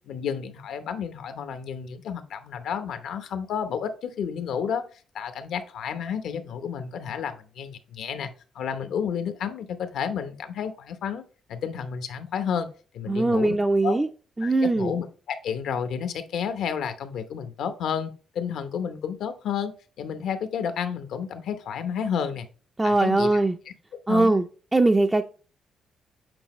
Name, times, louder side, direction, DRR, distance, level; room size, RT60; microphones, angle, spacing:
voice 1, 0.1-4.8 5.1-11.2 11.5-12.7 12.9-13.6 13.8-14.0 14.4-19.7 20.0-22.5 22.8-23.4 24.1-24.3, left 7 dB, 75° left, 0.8 m, -31 dB
voice 2, 13.1-14.1 14.4-14.9 22.8-23.6 24.1-24.4 24.7-25.2, right 2 dB, 15° right, 0.4 m, -21 dB
7.9 x 4.3 x 3.0 m
cardioid pair, 115°, 0 cm